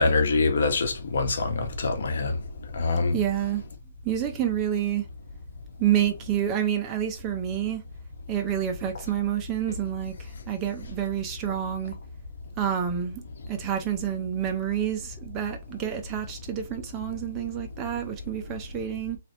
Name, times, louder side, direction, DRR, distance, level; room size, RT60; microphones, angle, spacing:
voice 1, 0.0-2.4 2.8-3.2, left 3 dB, 65° left, 1.2 m, -24 dB
voice 2, 3.1-3.6 4.0-5.1 5.8-7.8 8.3-11.9 12.6-13.2 13.5-19.2, right 10 dB, 15° right, 0.6 m, -28 dB
4.0 x 3.3 x 2.9 m
hypercardioid pair, 170°, 0 cm